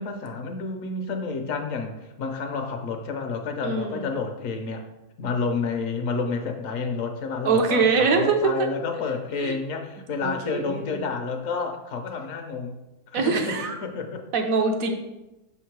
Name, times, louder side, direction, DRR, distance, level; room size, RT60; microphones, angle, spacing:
voice 1, 0.0-4.8 5.2-12.8 13.1-14.2, left 4 dB, 65° left, 5 dB, 1.0 m, -30 dB
voice 2, 3.6-4.1 7.4-8.7 9.4-9.6 10.2-11.0 13.1-13.7 14.3-14.9, right 4 dB, 70° right, 4 dB, 1.1 m, -23 dB
6.4 x 3.7 x 4.5 m, 0.98 s
omnidirectional pair, 1.6 m